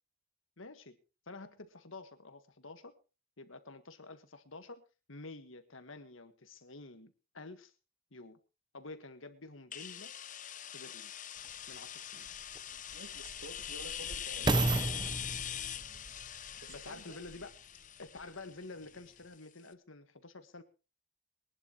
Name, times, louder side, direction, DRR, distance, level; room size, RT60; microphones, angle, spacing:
voice 1, 0.6-1.0 1.3-2.9 3.4-4.8 5.1-7.7 8.1-8.4 8.7-10.1 10.7-11.1 11.7-12.3 16.7-17.5 18.0-20.6, left 3 dB, 70° left, 9 dB, 1.7 m, -49 dB
sound 1, 9.7-19.3, left 10 dB, 40° left, 0.7 m, -43 dB
sound 2, 11.4-11.5 12.3-17.6 18.2-18.3, right 2 dB, 20° right, 0.7 m, -35 dB
voice 2, 12.9-15.0 16.6-17.2, right 2 dB, 75° right, 6 dB, 2.6 m, -51 dB
22.0 x 11.5 x 3.1 m, 0.32 s
head